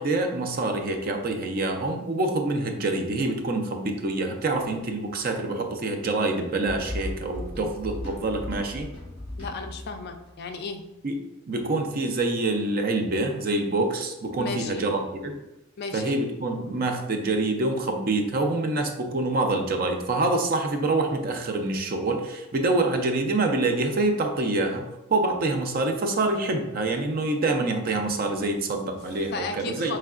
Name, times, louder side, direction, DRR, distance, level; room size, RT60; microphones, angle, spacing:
voice 1, 0.0-8.9 11.0-11.2 11.5-15.4 15.9-24.8 25.1-30.0, right 2 dB, 45° right, 4 dB, 0.4 m, -26 dB
sound 1, 6.6-10.3, left 1 dB, 25° left, 1.4 m, -37 dB
voice 2, 9.4-10.8 14.4-14.8 15.8-16.2 29.3-30.0, left 4 dB, 45° left, 5 dB, 0.3 m, -34 dB
4.5 x 3.2 x 2.4 m, 0.93 s
head